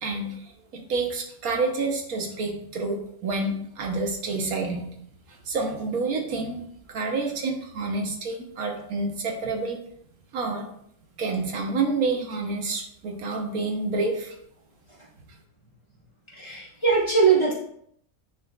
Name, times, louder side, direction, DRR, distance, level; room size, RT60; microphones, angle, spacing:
voice 1, 0.0-4.9 5.3-9.8 10.3-10.7 11.2-14.4, right 3 dB, 85° right, 2 dB, 1.5 m, -28 dB
voice 2, 16.4-17.5, right 5 dB, 20° left, -6 dB, 1.7 m, -21 dB
9.3 x 4.4 x 2.4 m, 0.69 s
omnidirectional pair, 1.5 m